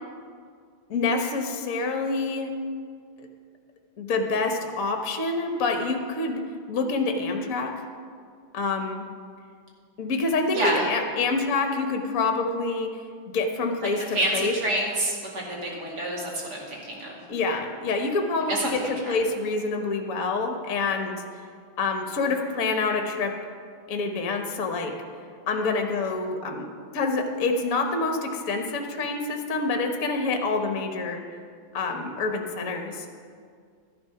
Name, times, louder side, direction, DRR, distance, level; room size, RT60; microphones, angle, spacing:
voice 1, 0.9-2.5 3.2-3.3 4.0-7.7 8.5-9.0 10.0-13.0 13.3-14.5 17.3-21.2 21.8-23.3 23.9-24.9 25.5-26.7 26.9-31.2 31.7-33.1, left 3 dB, 50° left, 4 dB, 1.4 m, -27 dB
voice 2, 10.5-10.9 14.1-17.2 18.5-19.1, right 1 dB, 55° right, -3 dB, 2.9 m, -28 dB
13.0 x 10.5 x 5.7 m, 2.2 s
omnidirectional pair, 2.1 m